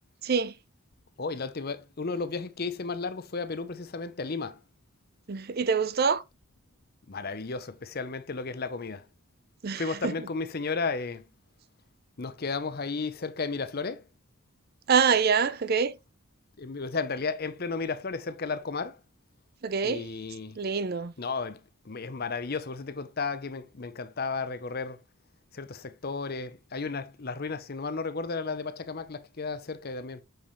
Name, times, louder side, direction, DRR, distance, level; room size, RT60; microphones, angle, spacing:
voice 1, 0.2-0.5 5.3-6.2 9.6-10.1 14.9-15.9 19.6-20.1 20.6-21.1, right 6 dB, 45° right, 0.5 m, -25 dB
voice 2, 1.2-4.6 7.1-9.0 9.7-11.2 12.2-14.0 16.6-19.0 19.8-20.6 21.2-25.0 25.5-30.2, left 4 dB, 45° left, 0.7 m, -33 dB
7.8 x 5.2 x 3.1 m
head